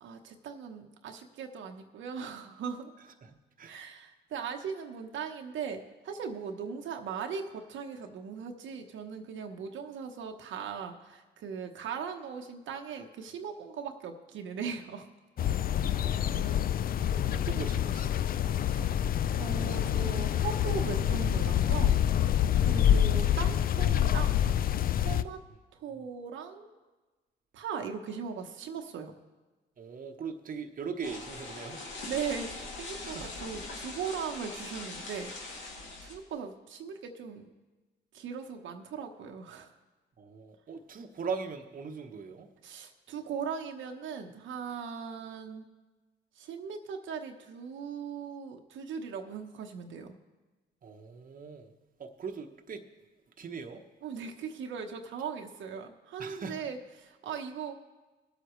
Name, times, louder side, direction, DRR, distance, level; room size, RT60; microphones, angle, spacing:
voice 1, 0.0-2.9 3.6-15.1 18.6-19.0 19.4-22.0 22.6-24.5 24.9-25.4 25.8-26.8 27.5-29.1 32.1-35.3 36.0-37.5 38.1-39.7 42.6-45.7 46.3-50.2 54.0-57.7, right 6 dB, 75° right, 4 dB, 1.0 m, -39 dB
voice 2, 3.2-3.8 15.8-16.7 17.1-18.3 29.8-31.9 33.1-33.3 40.2-42.5 50.8-51.7 52.0-52.8 53.4-53.8 56.2-56.7, right 5 dB, 45° right, 4 dB, 1.0 m, -40 dB
sound 1, 15.4-25.2, left 10 dB, 45° left, 0.4 m, -27 dB
sound 2, 31.0-36.2, left 3 dB, 80° left, 2.5 m, -42 dB
20.0 x 8.1 x 3.1 m, 1.2 s
cardioid pair, 90°, 20 cm